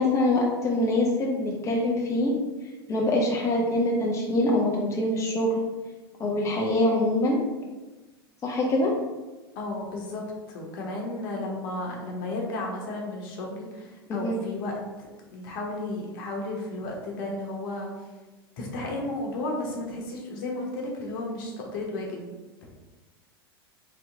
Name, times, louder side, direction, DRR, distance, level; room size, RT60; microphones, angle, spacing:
voice 1, 0.0-2.4 2.9-5.6 6.2-7.4 8.4-8.9 14.2-14.4, left 1 dB, 25° left, -2 dB, 0.7 m, -24 dB
voice 2, 9.5-10.2 10.5-14.8 15.3-17.9 18.6-22.2, left 2 dB, 60° left, -1 dB, 1.1 m, -33 dB
3.3 x 2.9 x 3.6 m, 1.2 s
hypercardioid pair, 95°, 13 cm